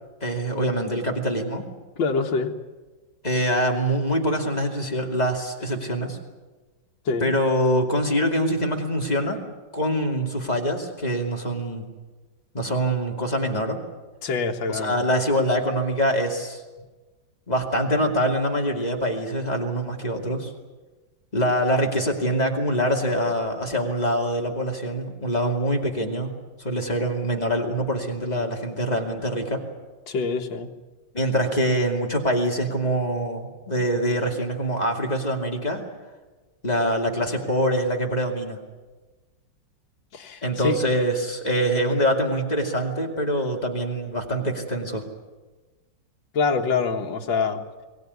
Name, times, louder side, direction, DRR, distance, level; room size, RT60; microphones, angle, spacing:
voice 1, 0.2-1.7 3.2-6.2 7.2-9.5 9.7-11.9 12.5-13.8 14.7-16.6 17.5-20.5 21.3-26.3 26.6-29.6 31.1-35.8 36.6-38.6 40.4-45.0, equal, 20° left, 1 dB, 2.7 m, -24 dB
voice 2, 2.0-2.5 7.1-7.3 14.2-15.0 30.1-30.7 40.1-40.8 46.3-47.6, left 4 dB, 75° left, 3 dB, 2.3 m, -25 dB
23.0 x 17.5 x 9.7 m, 1.2 s
omnidirectional pair, 2.0 m